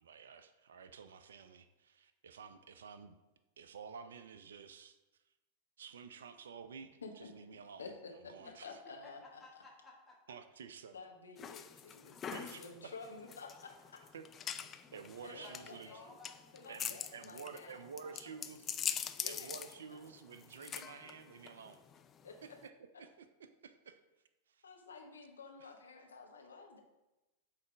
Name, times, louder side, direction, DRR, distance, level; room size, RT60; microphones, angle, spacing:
voice 1, 0.0-3.2 3.6-5.0 5.8-7.9 8.3-8.8 10.3-11.0 12.3-12.9 14.1-14.2 14.6-16.0 16.7-18.7 19.1-21.8 22.4-22.7 23.0-23.1 23.6-24.0 24.5-24.6 25.6-25.7, right 6 dB, 65° right, 10 dB, 0.4 m, -51 dB
voice 2, 7.8-9.4 10.9-14.0 15.2-16.1 16.5-17.8 18.1-18.4 19.2-19.6 19.9-20.0 22.2-22.6 24.6-26.8, left 4 dB, 70° left, 3 dB, 1.0 m, -51 dB
voice 3, 9.0-10.4 14.8-14.9 15.3-16.7 17.6-18.5, left 2 dB, 10° left, -4 dB, 1.3 m, -58 dB
sound 1, 11.4-22.7, left 8 dB, 25° left, 0.3 m, -44 dB
8.0 x 3.2 x 5.0 m, 1.0 s
figure-of-eight pair, 90°, 0 cm